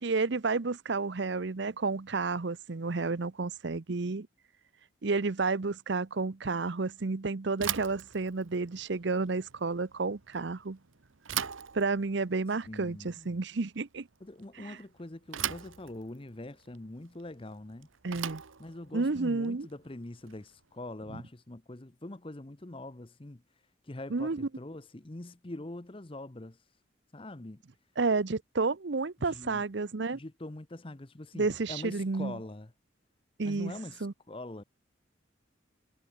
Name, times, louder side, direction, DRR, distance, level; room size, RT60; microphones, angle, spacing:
voice 1, 0.0-4.3 5.0-10.8 11.7-14.1 14.6-14.8 18.0-18.4 18.9-19.7 24.1-24.5 28.0-30.2 31.3-32.4 33.4-33.8 34.0-34.1, right 3 dB, 60° right, 0.7 m, -31 dB
Bicycle / Thump thud, 7.5-20.6, right 10 dB, 85° right, 1.1 m, -41 dB
voice 2, 12.7-13.4 14.2-17.9 18.6-23.4 23.8-26.6 27.1-27.6 29.2-29.6 30.1-32.7 33.4-34.6, left 1 dB, 25° left, 0.8 m, -43 dB
head